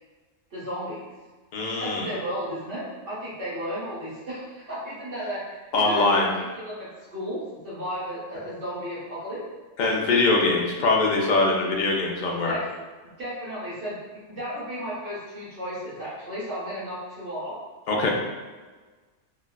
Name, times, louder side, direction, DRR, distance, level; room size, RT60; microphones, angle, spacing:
voice 1, 0.5-1.1 1.8-6.0 6.4-9.4 12.5-12.6 13.2-17.6, equal, 85° right, -10 dB, 1.5 m, -34 dB
voice 2, 1.5-2.1 5.7-6.3 9.8-12.6 17.9-18.1, left 3 dB, 50° left, -1 dB, 0.6 m, -22 dB
4.2 x 2.2 x 2.2 m, 1.3 s
omnidirectional pair, 1.2 m